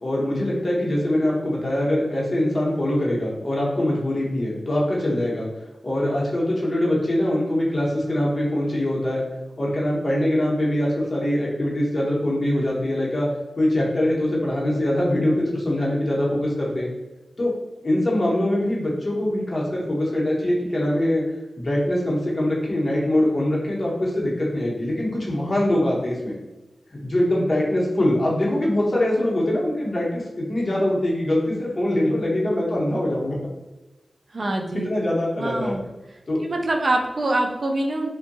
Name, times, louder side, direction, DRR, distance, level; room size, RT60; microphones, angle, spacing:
voice 1, 0.0-5.5 5.8-9.2 9.6-13.3 13.6-16.9 17.4-17.5 17.8-21.2 21.6-26.3 27.0-33.4 34.7-35.8 36.3-36.4, left 1 dB, 40° left, -5 dB, 0.9 m, -23 dB
voice 2, 34.3-34.9 35.4-35.8 36.4-38.1, right 2 dB, 55° right, 2 dB, 0.4 m, -24 dB
2.6 x 2.2 x 2.6 m, 1.1 s
wide cardioid pair, 95°, 0 cm